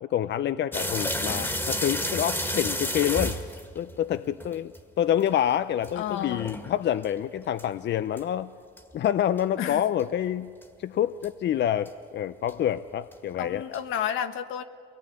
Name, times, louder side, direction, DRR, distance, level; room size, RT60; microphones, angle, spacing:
voice 1, 0.0-3.4 3.7-8.5 8.9-10.5 10.8-13.6, left 10 dB, 60° left, 12 dB, 0.6 m, -27 dB
sound 1, 0.7-4.8 5.2-5.3 5.8-7.1 7.6-7.7 8.2-8.3 8.8-8.9 9.4-9.5 10.0-10.1 10.6-10.7 11.2-11.3 11.9-12.0 12.5-12.6 13.1-13.2 13.7-13.8, equal, 10° left, 2.0 m, -31 dB
voice 2, 5.9-6.5 9.6-9.8 13.4-14.6, left 9 dB, 90° left, 9 dB, 1.2 m, -31 dB
23.0 x 18.5 x 9.8 m, 2.1 s
cardioid pair, 90°, 20 cm